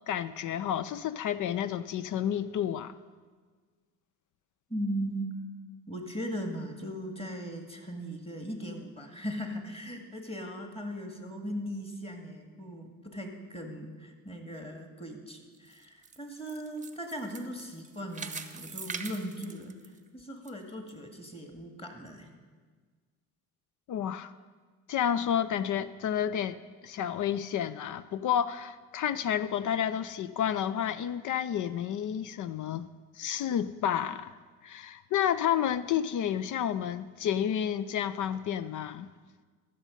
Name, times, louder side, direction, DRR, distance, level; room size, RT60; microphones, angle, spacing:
voice 1, 0.1-2.9 23.9-24.3 24.9-26.6 26.8-32.9 33.2-34.4 34.6-39.1, left 9 dB, 50° left, 15 dB, 0.5 m, -30 dB
voice 2, 4.7-5.3 5.9-19.7 20.1-22.3, equal, 15° left, 4 dB, 2.0 m, -38 dB
sound 1, 15.5-20.5 20.9-21.0 21.6-21.7, right 5 dB, 20° right, 0.9 m, -43 dB
14.0 x 6.5 x 5.2 m, 1.5 s
hypercardioid pair, 65°, 41 cm